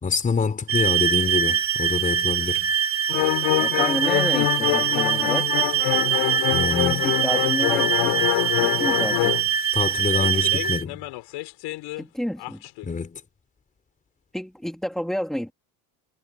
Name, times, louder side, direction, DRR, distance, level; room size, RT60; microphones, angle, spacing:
voice 1, 0.0-2.7 6.5-7.1 9.7-11.0 12.8-13.2, left 5 dB, 15° left, 4.1 m, -26 dB
sound 1, 0.7-10.8, right 8 dB, 25° right, 3.1 m, -23 dB
sound 2, 3.1-9.5 10.1-12.0 12.4-12.9, left 19 dB, 65° left, 4.9 m, -25 dB
voice 2, 3.6-5.5 7.0-8.2 8.6-9.4 12.0-12.6 14.3-15.5, equal, ahead, 3.0 m, -30 dB
cardioid pair, 180°, 46 cm